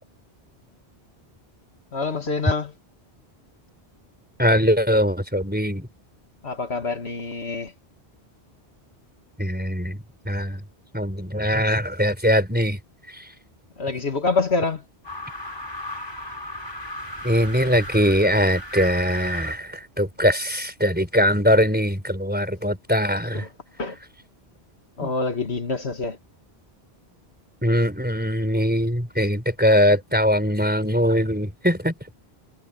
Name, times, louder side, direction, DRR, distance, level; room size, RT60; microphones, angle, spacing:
voice 1, 1.9-2.7 6.4-7.7 13.8-14.8 23.3-23.5 23.8-24.0 25.0-26.2, left 3 dB, 75° left, 2.4 m, -26 dB
voice 2, 4.4-5.9 9.4-10.0 10.3-10.6 10.9-12.8 13.1-13.2 17.2-23.5 25.0-25.1 27.6-31.9, equal, 10° right, 4.3 m, -21 dB
sound 1, 15.0-19.6, equal, 20° left, 5.3 m, -35 dB
omnidirectional pair, 1.1 m